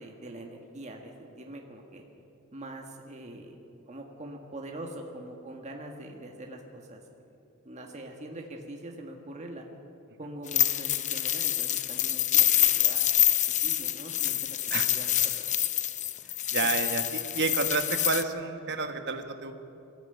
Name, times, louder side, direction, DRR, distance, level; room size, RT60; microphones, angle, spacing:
voice 1, 0.0-2.0 2.5-3.6 3.9-7.3 7.7-9.7 10.2-13.4 13.6-14.6 14.9-15.5 16.4-16.7, right 1 dB, 35° right, 2 dB, 1.7 m, -43 dB
sound 1, 10.5-18.2, left 12 dB, 35° left, 0.7 m, -26 dB
voice 2, 16.5-19.5, right 4 dB, 55° right, 7 dB, 1.5 m, -30 dB
21.0 x 14.0 x 9.1 m, 2.7 s
head